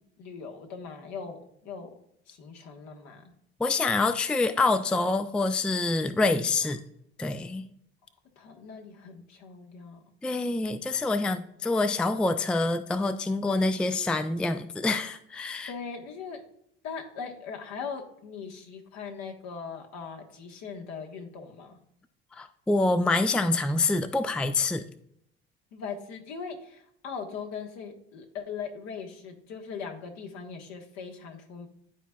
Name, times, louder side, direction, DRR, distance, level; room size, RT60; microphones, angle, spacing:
voice 1, 0.2-1.9 2.3-3.3 8.4-10.0 15.7-16.4 16.8-21.8 25.7-31.7, left 5 dB, 60° left, 3 dB, 1.4 m, -40 dB
voice 2, 3.6-6.8 7.2-7.7 10.2-15.7 22.3-24.8, left 3 dB, 5° left, 11 dB, 0.4 m, -26 dB
11.5 x 4.5 x 2.3 m, 0.72 s
hypercardioid pair, 70°, 30 cm